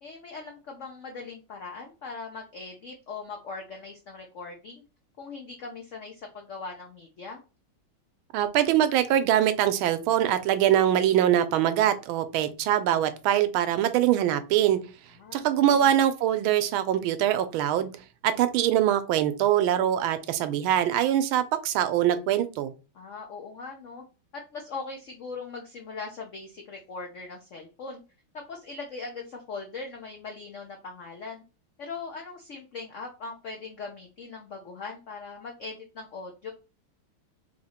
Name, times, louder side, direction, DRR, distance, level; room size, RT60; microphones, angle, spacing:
voice 1, 0.0-4.8 5.2-7.4 15.2-15.4 15.7-15.9 22.9-24.0 24.3-28.0 28.3-31.4 31.8-36.5, left 4 dB, 90° left, 0.6 m, -40 dB
voice 2, 8.3-14.8 15.3-17.9 18.2-22.7, right 11 dB, 80° right, 1.4 m, -23 dB
3.6 x 2.9 x 4.2 m
omnidirectional pair, 2.3 m